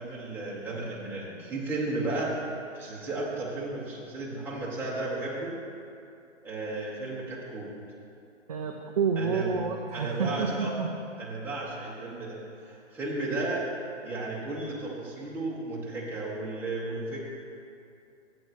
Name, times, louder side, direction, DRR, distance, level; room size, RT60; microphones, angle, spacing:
voice 1, 0.0-2.3 2.7-5.5 6.4-7.7 9.2-9.5 9.9-10.7 11.2-13.6 14.0-17.2, right 2 dB, 5° right, -7 dB, 1.6 m, -34 dB
voice 2, 8.5-10.9, right 5 dB, 30° right, 2 dB, 0.4 m, -29 dB
13.5 x 8.6 x 3.1 m, 2.6 s
hypercardioid pair, 140°, 38 cm